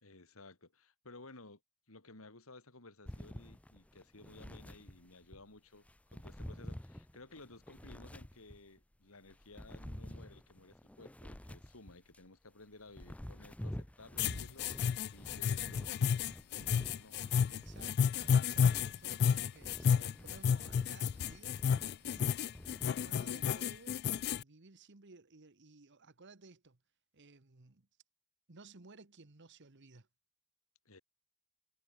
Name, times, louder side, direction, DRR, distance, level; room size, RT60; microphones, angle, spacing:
voice 1, 0.0-1.6 1.9-17.2 19.5-19.9 30.9-31.0, left 2 dB, 80° left, 3.4 m, -56 dB
sound 1, 3.1-5.4 5.8-8.8 9.2-12.3 12.7-22.8, equal, 5° left, 0.6 m, -49 dB
sound 2, 14.2-24.4, left 7 dB, 50° left, 0.3 m, -31 dB
voice 2, 17.5-22.3 22.8-24.0 24.3-26.8 27.1-27.9 28.5-30.1, right 3 dB, 60° right, 1.4 m, -58 dB
head